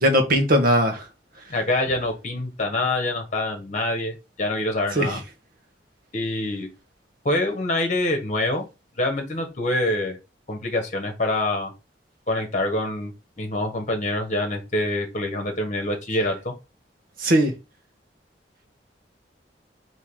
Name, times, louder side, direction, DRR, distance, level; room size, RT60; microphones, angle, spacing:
voice 1, 0.0-1.1 4.9-5.2 17.2-17.5, equal, 55° right, 1.0 m, -19 dB
voice 2, 1.5-5.2 6.1-6.7 7.2-8.7 9.0-10.2 10.5-11.7 12.3-13.1 13.4-16.5, left 1 dB, 45° left, 1.1 m, -25 dB
3.7 x 2.9 x 4.5 m
head